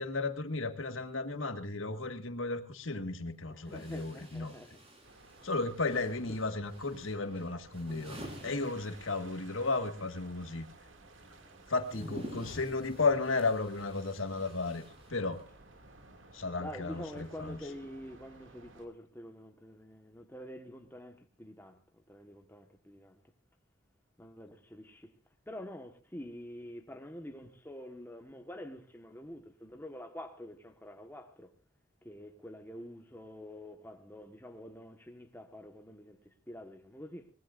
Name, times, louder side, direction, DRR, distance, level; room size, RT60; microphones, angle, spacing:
voice 1, 0.0-4.5 5.4-10.7 11.7-14.8 15.1-15.4 16.3-17.6, left 3 dB, 90° left, 1.7 m, -34 dB
sound 1, 2.7-2.8 3.6-9.5 9.7-15.6, equal, 30° right, 4.4 m, -50 dB
voice 2, 3.5-4.8 5.4-5.5 6.3-6.4 11.9-12.1 12.4-12.5 16.6-23.2 24.2-25.1 25.5-31.5 32.0-37.3, left 1 dB, 10° left, 1.3 m, -47 dB
sound 2, 5.0-18.9, right 2 dB, 80° right, 2.4 m, -57 dB
24.0 x 19.5 x 2.5 m
head